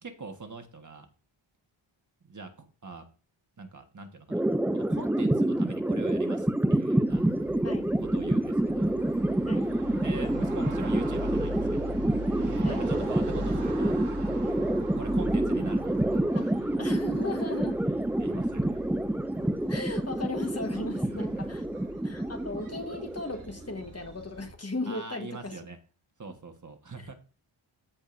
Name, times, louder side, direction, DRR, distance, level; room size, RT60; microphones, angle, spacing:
voice 1, 0.0-1.1 2.2-3.0 3.6-4.4 4.7-7.3 8.1-9.0 10.0-12.0 12.7-14.0 14.9-16.3 18.2-18.8 21.0-21.5 24.8-25.8 26.2-27.1, right 4 dB, 35° right, 1.5 m, -42 dB
sound 1, 4.3-23.8, right 1 dB, 5° right, 0.3 m, -28 dB
sound 2, 7.1-24.5, right 1 dB, 85° right, 2.9 m, -41 dB
voice 2, 7.6-8.0 9.5-9.7 12.6-12.9 16.3-17.8 19.7-21.6 22.0-25.6, left 2 dB, 30° left, 1.3 m, -36 dB
15.0 x 5.1 x 2.6 m
wide cardioid pair, 115°, 49 cm